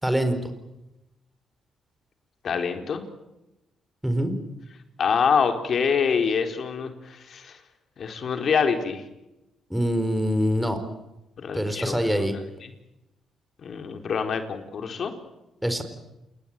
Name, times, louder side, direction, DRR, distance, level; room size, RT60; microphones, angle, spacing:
voice 1, 0.0-0.5 4.0-4.3 9.7-10.8 11.5-12.3 15.6-15.8, equal, 5° right, 8 dB, 4.5 m, -24 dB
voice 2, 2.4-3.0 5.0-7.6 8.0-9.0 11.4-12.7 13.6-15.1, left 6 dB, 55° left, 6 dB, 4.2 m, -26 dB
29.0 x 21.0 x 9.1 m, 0.94 s
cardioid pair, 90°, 0 cm